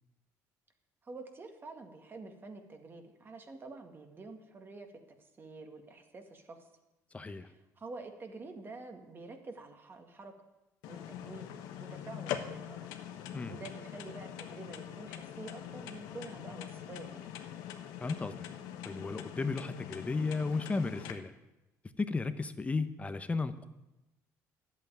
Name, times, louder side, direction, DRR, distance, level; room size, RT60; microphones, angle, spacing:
voice 1, 1.0-4.9 5.2-6.7 7.3-10.3 10.9-11.5 11.8-13.0 13.5-17.3, right 3 dB, 35° right, 5 dB, 1.9 m, -48 dB
voice 2, 7.1-7.5 13.3-13.6 18.0-18.5 18.8-21.3 22.0-23.7, left 3 dB, 20° left, 11 dB, 0.9 m, -34 dB
sound 1, 10.8-21.1, left 10 dB, 90° left, 1.1 m, -43 dB
11.0 x 8.3 x 9.1 m, 0.98 s
cardioid pair, 100°, 7 cm